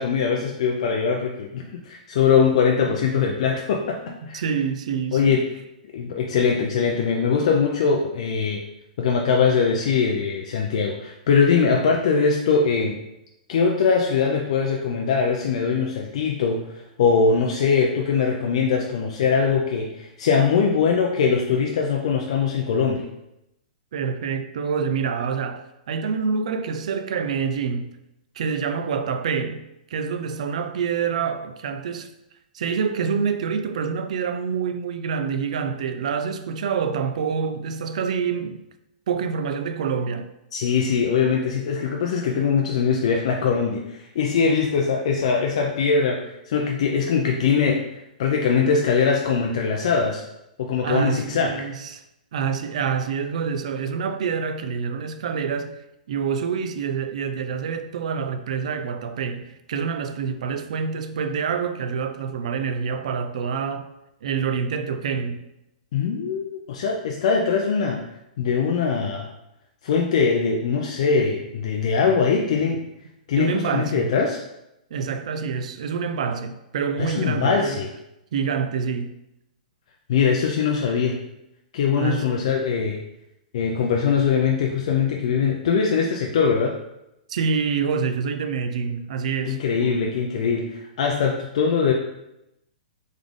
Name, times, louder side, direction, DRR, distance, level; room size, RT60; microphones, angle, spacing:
voice 1, 0.0-4.0 4.3-4.4 5.1-5.5 5.9-8.6 9.0-13.0 13.5-23.1 40.5-50.2 50.6-51.7 65.9-68.0 68.4-69.3 69.8-72.8 73.3-74.4 77.0-77.9 80.1-81.2 81.7-83.0 83.5-86.8 89.5-91.9, left 5 dB, 45° left, 0.4 m, -22 dB
voice 2, 4.3-5.4 23.9-27.9 28.4-29.6 29.9-32.1 32.5-38.6 39.1-40.3 50.8-52.0 52.3-55.7 56.1-63.9 64.2-65.4 73.4-74.1 74.9-77.8 78.3-79.1 82.0-82.3 87.3-90.0, right 6 dB, 50° right, 0.4 m, -26 dB
3.6 x 3.6 x 3.5 m
hypercardioid pair, 175°, 5 cm